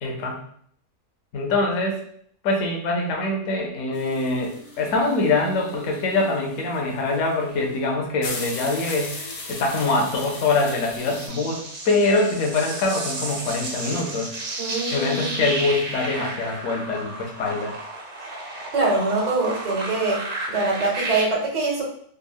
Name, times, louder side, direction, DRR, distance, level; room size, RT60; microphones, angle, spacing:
voice 1, 0.0-0.4 1.3-2.0 2.4-9.2 9.5-14.3 14.9-17.7, left 2 dB, 65° left, 0 dB, 0.9 m, -24 dB
sound 1, 3.9-11.3, left 3 dB, 85° left, 0.5 m, -38 dB
sound 2, 10.6-21.2, right 2 dB, 60° right, 0.9 m, -33 dB
voice 2, 14.6-15.4 18.7-21.8, right 3 dB, 40° right, -3 dB, 0.5 m, -24 dB
3.5 x 2.0 x 2.2 m, 0.62 s
omnidirectional pair, 1.7 m